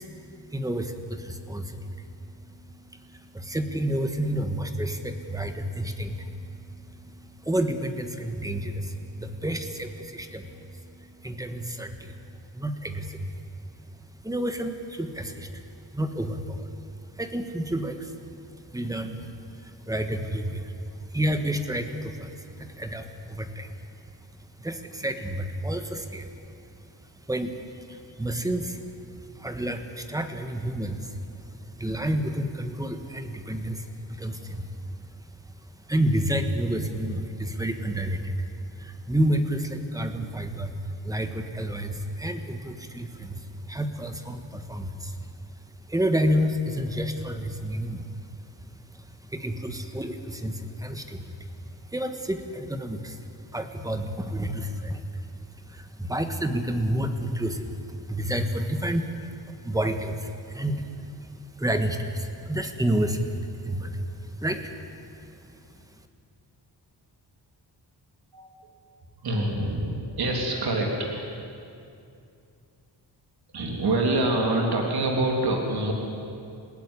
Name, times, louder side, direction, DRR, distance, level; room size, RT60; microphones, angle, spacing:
voice 1, 0.0-13.4 14.2-15.6 15.9-16.7 17.1-20.8 21.1-23.7 24.6-26.4 27.1-28.8 29.1-35.1 35.4-35.6 35.9-38.4 38.8-45.3 45.9-48.1 48.9-55.3 55.7-61.3 61.6-65.3 65.9-66.0, right 1 dB, 10° right, 7 dB, 1.4 m, -30 dB
voice 2, 69.2-71.1 73.5-75.9, right 2 dB, 60° right, 0 dB, 3.3 m, -25 dB
28.0 x 16.0 x 9.8 m, 2.6 s
wide cardioid pair, 175°, 42 cm